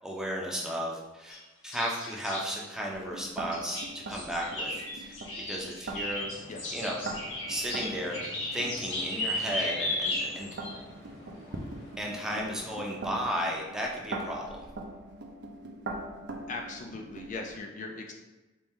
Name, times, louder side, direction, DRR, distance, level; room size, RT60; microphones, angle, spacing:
voice 1, 0.0-5.2 5.5-6.3 6.7-6.9 7.5-8.2 8.5-10.5 12.0-14.7, equal, 5° right, -3 dB, 0.6 m, -34 dB
sound 1, 1.3-2.5 3.5-10.8, left 1 dB, 85° left, 1.0 m, -35 dB
sound 2, 2.9-17.6, right 2 dB, 65° right, 0.5 m, -42 dB
Stream / Boat Water vehicle, 6.2-13.4, equal, 60° left, 1.2 m, -51 dB
voice 2, 6.5-6.8 16.5-18.1, left 3 dB, 40° left, 2 dB, 0.4 m, -39 dB
4.3 x 2.6 x 3.5 m, 1.1 s
head